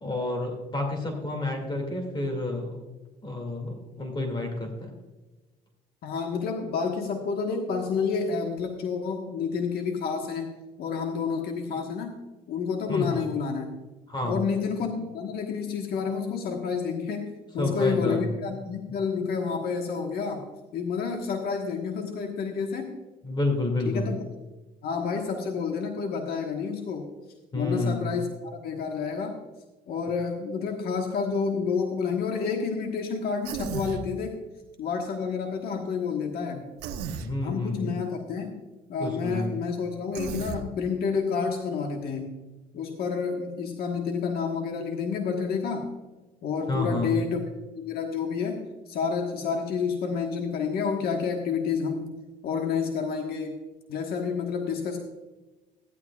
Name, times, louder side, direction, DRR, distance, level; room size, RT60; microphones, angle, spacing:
voice 1, 0.0-2.8 3.2-4.9 12.9-13.2 14.1-14.4 17.6-18.3 23.2-24.1 27.5-28.1 37.2-38.0 39.0-39.6 46.7-47.1, left 2 dB, 30° left, 2 dB, 2.4 m, -29 dB
voice 2, 6.0-10.5 10.8-12.2 12.5-13.7 14.2-23.0 23.8-24.2 24.8-27.1 27.5-29.4 29.9-34.4 34.8-36.7 37.4-38.6 38.9-42.4 42.7-45.9 46.4-47.4 47.8-52.2 52.4-53.6 53.9-55.0, left 5 dB, 65° left, 3 dB, 1.4 m, -29 dB
Human voice, 33.4-34.0 36.8-37.3 40.1-40.6, right 7 dB, 80° right, 0.9 m, -34 dB
15.0 x 11.0 x 2.4 m, 1.1 s
cardioid pair, 110°, 17 cm